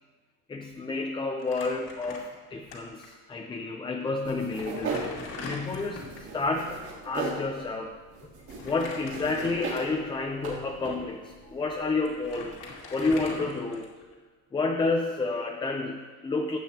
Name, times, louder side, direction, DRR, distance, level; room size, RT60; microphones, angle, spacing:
voice 1, 0.5-5.1 5.4-7.9 8.6-12.5 12.9-13.9 14.5-16.6, left 3 dB, 15° left, 2 dB, 0.5 m, -30 dB
Crumpling crinkling, 1.4-2.7 3.0-3.1 4.0-4.1 4.5-6.3 8.5-10.1 10.7-10.8 11.7-11.8 12.1-14.1, left 3 dB, 70° left, 2.4 m, -41 dB
sound 1, 4.2-12.6, right 3 dB, 60° right, 3.1 m, -39 dB
15.0 x 8.6 x 2.9 m, 1.4 s
cardioid pair, 160°, 33 cm